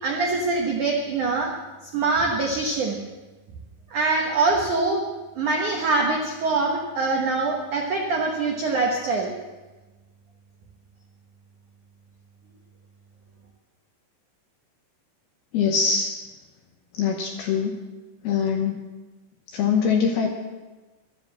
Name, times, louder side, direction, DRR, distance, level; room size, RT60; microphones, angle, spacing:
voice 1, 0.0-1.5 1.9-3.0 3.9-5.0 5.4-9.3, right 3 dB, 80° right, 0 dB, 1.7 m, -24 dB
voice 2, 15.5-16.1 17.0-17.8 18.2-18.8 19.5-20.3, left 6 dB, 75° left, 2 dB, 2.4 m, -23 dB
12.5 x 10.5 x 7.5 m, 1.2 s
omnidirectional pair, 5.6 m